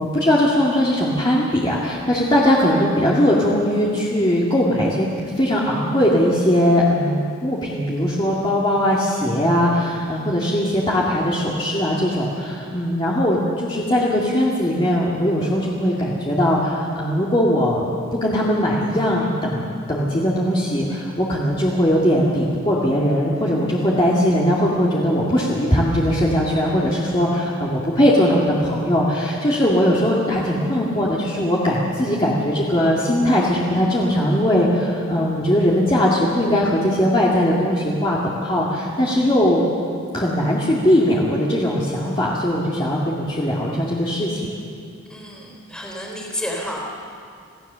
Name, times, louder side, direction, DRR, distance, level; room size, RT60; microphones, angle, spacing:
voice 1, 0.0-17.9 18.2-39.6 40.1-44.6, equal, 25° left, -5 dB, 2.3 m, -20 dB
voice 2, 45.1-46.8, equal, 5° left, -1 dB, 3.6 m, -30 dB
27.5 x 16.5 x 6.9 m, 2.3 s
head